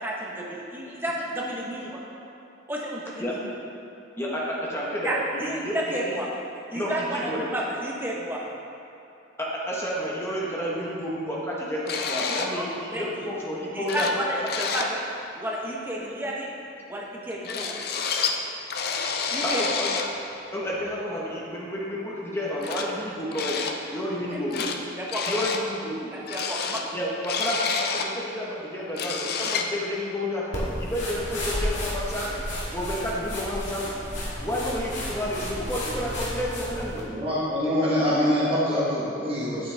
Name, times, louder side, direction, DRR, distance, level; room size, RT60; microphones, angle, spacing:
voice 1, 0.0-2.0 2.7-3.4 5.0-6.3 6.7-8.4 12.5-13.3 13.7-15.0 15.4-16.5 16.9-17.8 19.3-19.6 25.0-25.4 26.1-26.8, right 1 dB, 10° right, -4 dB, 0.9 m, -31 dB
voice 2, 4.2-6.0 6.7-7.4 9.4-14.1 19.4-19.9 20.5-23.6 23.9-24.7 25.3-26.1 26.9-32.3 32.7-33.9 34.4-37.0 37.8-37.9, equal, 15° left, -5 dB, 1.2 m, -30 dB
sound 1, 11.9-12.5 13.5-13.6 13.9-14.2 14.5-14.9 17.4-18.4 18.7-20.1 21.5-21.6 22.6-22.9 23.3-23.8 24.1-24.8 25.1-25.6 26.3-28.1 28.6-28.7 28.9-29.7, left 5 dB, 50° left, 0.5 m, -29 dB
sound 2, 30.5-37.0, left 1 dB, 70° left, 1.9 m, -32 dB
voice 3, 37.0-39.7, equal, 30° right, -8 dB, 1.2 m, -24 dB
8.5 x 7.9 x 3.4 m, 2.8 s
head